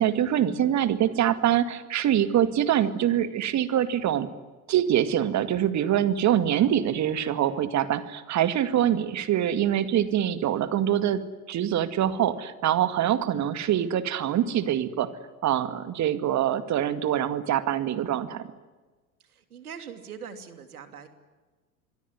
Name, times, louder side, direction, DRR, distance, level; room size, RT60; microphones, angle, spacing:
voice 1, 0.0-4.3 4.7-11.2 11.5-15.1 15.4-18.4, right 10 dB, 40° right, 11 dB, 2.1 m, -24 dB
voice 2, 19.2-21.1, right 7 dB, 80° right, 8 dB, 3.0 m, -42 dB
26.0 x 23.0 x 9.7 m, 1.3 s
figure-of-eight pair, 75°, 44 cm